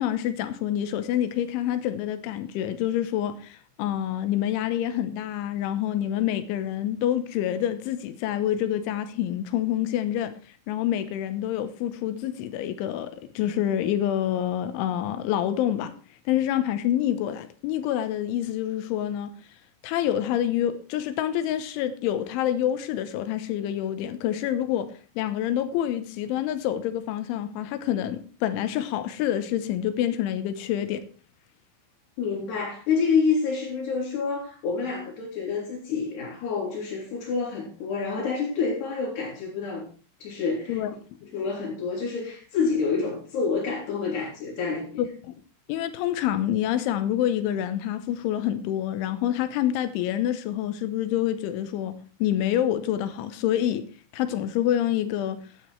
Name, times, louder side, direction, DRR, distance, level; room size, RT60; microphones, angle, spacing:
voice 1, 0.0-10.3 10.7-15.9 16.3-19.3 19.8-31.0 40.7-40.9 45.0-45.3 45.7-51.9 52.2-53.8 54.1-55.4, left 11 dB, 80° left, 3.2 m, -27 dB
voice 2, 32.2-39.9 40.2-40.8 41.3-45.0, left 5 dB, 60° left, 5.0 m, -28 dB
12.5 x 10.0 x 4.5 m
omnidirectional pair, 5.7 m